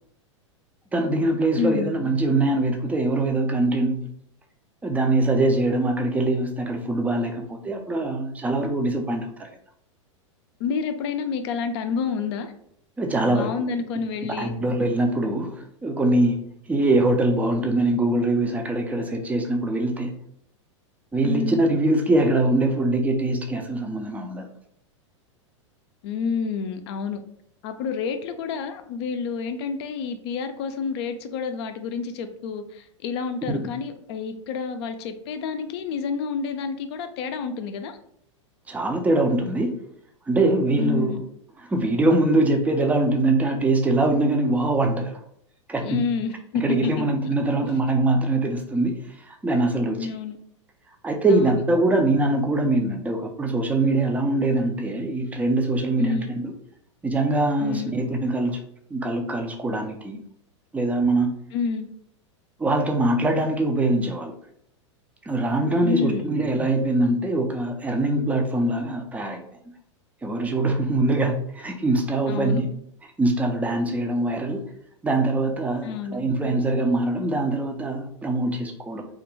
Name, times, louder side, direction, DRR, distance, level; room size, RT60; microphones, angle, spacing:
voice 1, 0.9-4.0 4.8-9.5 13.0-13.5 14.4-16.4 16.7-20.1 21.1-24.5 33.5-33.7 38.7-39.8 40.3-41.2 41.7-45.2 45.7-46.0 46.6-50.1 51.0-56.5 57.0-58.6 58.9-60.2 60.7-61.4 62.6-64.3 65.3-69.4 70.2-72.7 73.2-74.6 75.0-79.1, right 2 dB, 10° right, 4 dB, 0.4 m, -23 dB
voice 2, 1.6-1.9 10.6-12.5 13.2-14.5 21.2-21.6 26.0-27.2 27.6-38.0 40.8-41.2 45.8-46.9 47.5-47.6 50.0-50.4 51.3-51.6 56.0-56.3 57.6-57.9 61.5-61.9 65.8-66.4 72.3-72.6 75.8-76.3, left 5 dB, 55° left, 8 dB, 0.4 m, -29 dB
2.4 x 2.1 x 3.1 m, 0.69 s
hypercardioid pair, 105°, 16 cm